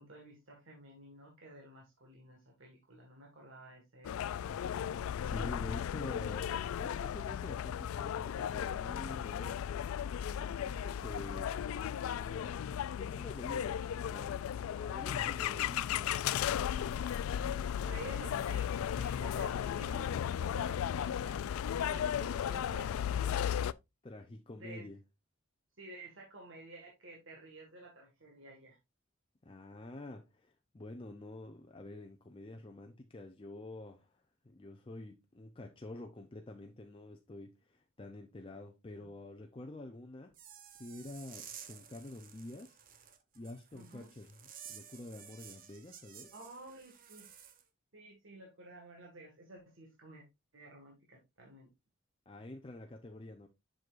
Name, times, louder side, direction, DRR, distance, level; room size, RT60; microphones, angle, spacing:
voice 1, 0.0-4.5 17.8-20.1 20.4-21.4 21.8-23.7 24.5-24.9 25.8-28.8 39.0-39.1 43.8-44.1 46.3-47.3 47.9-50.2 50.5-51.7, right 2 dB, 65° right, 1.8 m, -52 dB
sound 1, 4.0-23.7, left 9 dB, 85° left, 0.3 m, -35 dB
voice 2, 5.2-9.6 10.5-16.2 24.0-25.0 29.4-40.4 40.8-42.8 43.3-44.4 44.7-46.3 52.3-53.5, left 1 dB, 25° left, 0.6 m, -48 dB
sound 2, 40.3-47.6, right 8 dB, 45° right, 0.8 m, -53 dB
7.7 x 6.1 x 2.5 m
head